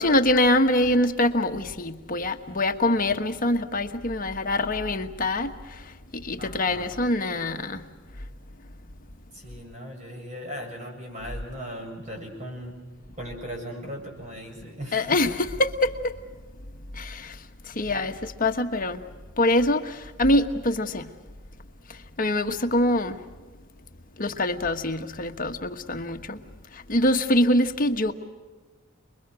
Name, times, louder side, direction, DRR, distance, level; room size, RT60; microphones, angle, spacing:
voice 1, 0.0-5.8 6.1-7.8 14.9-16.1 16.9-17.4 17.7-19.0 19.4-21.1 22.2-23.2 24.2-26.4 26.7-28.1, left 1 dB, 40° left, 6 dB, 1.3 m, -24 dB
voice 2, 6.4-7.0 9.3-12.8 13.2-15.3, equal, 35° right, 2 dB, 7.1 m, -38 dB
29.0 x 22.0 x 6.3 m, 1.3 s
head